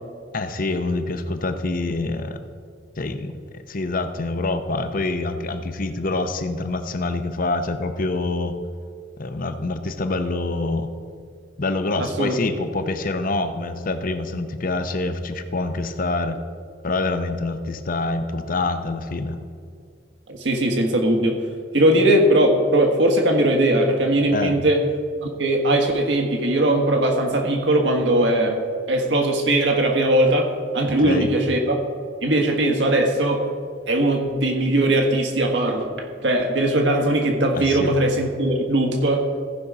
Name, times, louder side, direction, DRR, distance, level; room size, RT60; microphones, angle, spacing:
voice 1, 0.3-2.4 3.0-3.4 3.7-8.6 9.2-10.9 11.6-16.4 16.8-19.4 24.3-24.6 31.0-31.3 37.5-37.9, left 2 dB, 50° left, 9 dB, 0.8 m, -26 dB
voice 2, 12.0-12.3 20.3-21.4 21.7-24.8 25.4-28.6 28.9-31.8 32.2-33.4 33.9-39.3, right 1 dB, 75° right, 2 dB, 1.5 m, -20 dB
15.0 x 5.5 x 4.9 m, 2.2 s
head